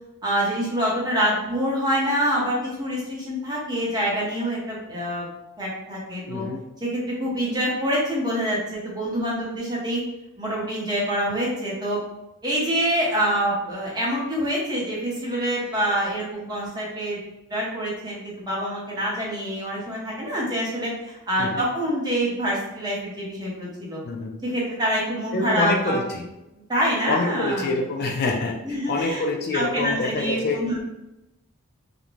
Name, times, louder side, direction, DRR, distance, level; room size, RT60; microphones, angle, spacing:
voice 1, 0.2-5.3 5.6-6.4 6.8-10.0 10.4-12.0 12.4-17.2 17.5-24.0 24.4-26.0 26.5-27.7 28.6-29.2 29.5-30.8, equal, 20° right, -5 dB, 0.8 m, -26 dB
voice 2, 6.3-6.6 21.4-21.6 24.0-24.3 25.3-26.2 27.1-28.5 28.9-30.6, left 3 dB, 45° left, 1 dB, 0.3 m, -26 dB
2.5 x 2.1 x 3.0 m, 0.93 s
head